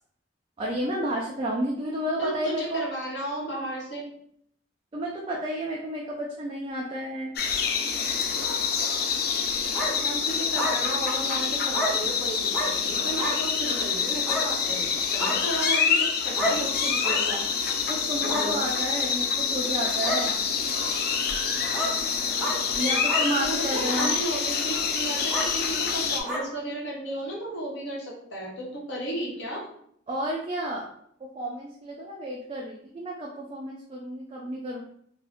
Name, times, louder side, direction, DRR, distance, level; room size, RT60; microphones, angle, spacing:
voice 1, 0.6-2.8 4.9-7.3 17.9-20.4 22.7-24.1 30.1-30.9 31.2-34.8, right 1 dB, 30° right, -2 dB, 0.3 m, -31 dB
voice 2, 2.2-4.1 10.0-17.4 18.2-18.6 22.8-29.6, equal, 70° left, -3 dB, 1.0 m, -34 dB
sound 1, 7.4-26.2, left 6 dB, 55° left, 0.3 m, -27 dB
sound 2, 9.7-9.9 10.5-10.7 11.7-11.9 12.5-12.7 13.2-13.3 14.3-14.4 15.2-15.4 16.4-16.5 17.0-17.2 18.2-18.5 19.3-19.4 20.0-20.2 20.8-20.9 21.7-21.9 22.4-22.6 23.1-23.2 23.9-24.1 24.7-24.8 25.3-25.5 26.2-26.4, equal, 5° right, 0.7 m, -29 dB
2.5 x 2.1 x 3.4 m, 0.68 s
head